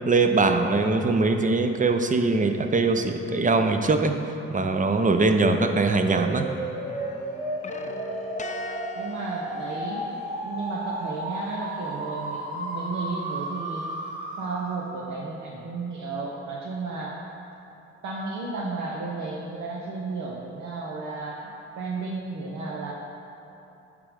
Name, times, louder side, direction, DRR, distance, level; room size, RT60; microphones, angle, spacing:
voice 1, 0.1-4.1 4.5-6.5, right 3 dB, 25° right, 6 dB, 0.6 m, -22 dB
sound 1, 5.1-15.0, right 1 dB, 85° right, 1.4 m, -33 dB
sound 2, 6.8-10.4, left 2 dB, 25° left, 0.5 m, -41 dB
voice 2, 8.9-13.9 14.4-17.2 18.0-22.9, right 3 dB, 65° right, -3 dB, 0.8 m, -33 dB
8.2 x 3.7 x 4.9 m, 2.8 s
hypercardioid pair, 45°, 31 cm